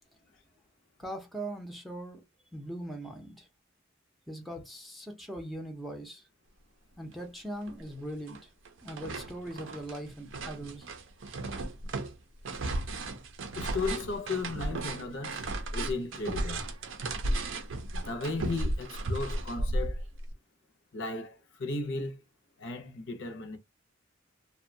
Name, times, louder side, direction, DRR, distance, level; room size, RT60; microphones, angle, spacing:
voice 1, 1.0-2.2 2.5-3.5 4.3-6.3 7.0-8.5 8.8-10.9, right 1 dB, ahead, 0.4 m, -40 dB
sound 1, 7.2-7.3 7.7-8.4 8.6-20.3, right 2 dB, 80° right, 0.5 m, -35 dB
voice 2, 13.6-16.6 17.9-20.0 20.9-22.2 22.6-23.6, left 3 dB, 65° left, 0.6 m, -35 dB
2.6 x 2.1 x 2.6 m
head